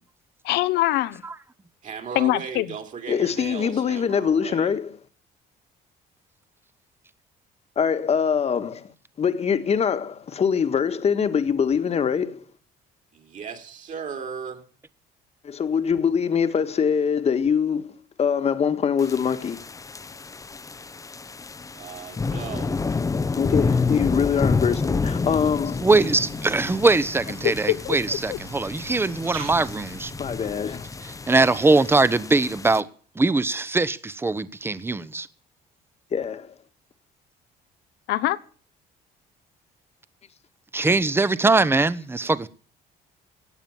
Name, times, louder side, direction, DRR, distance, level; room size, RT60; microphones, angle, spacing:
voice 1, 0.4-1.2 2.1-2.7 27.7-28.4 38.1-38.4, left 15 dB, 85° left, 1.0 m, -23 dB
voice 2, 1.8-4.7 13.1-14.7 21.7-22.8, right 6 dB, 50° right, 3.3 m, -36 dB
voice 3, 3.1-4.9 7.8-8.9 9.2-12.4 15.4-19.6 23.3-25.8 30.2-30.9 36.1-36.5, left 7 dB, 40° left, 1.6 m, -23 dB
sound 1, 19.0-32.8, left 4 dB, 20° left, 0.8 m, -29 dB
sound 2, 22.2-30.5, right 7 dB, 90° right, 5.9 m, -45 dB
voice 4, 25.8-30.1 31.3-32.9 33.2-35.3 40.7-42.5, right 3 dB, 15° right, 0.9 m, -21 dB
17.0 x 9.2 x 7.2 m
cardioid pair, 110°, 17 cm